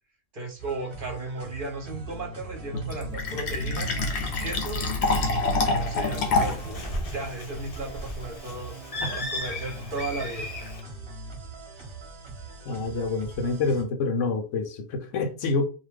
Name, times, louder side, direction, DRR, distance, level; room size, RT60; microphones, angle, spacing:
voice 1, 0.3-3.9 4.4-8.7 9.1-10.5, right 2 dB, 50° right, 0.8 m, -35 dB
sound 1, 0.6-13.8, right 3 dB, 25° right, 0.8 m, -42 dB
Fill (with liquid), 2.7-6.7, left 3 dB, 65° left, 0.8 m, -26 dB
Bird, 5.8-10.8, left 1 dB, 45° left, 0.5 m, -36 dB
voice 2, 12.7-15.7, left 3 dB, 85° left, 1.0 m, -27 dB
2.7 x 2.1 x 3.2 m
omnidirectional pair, 1.3 m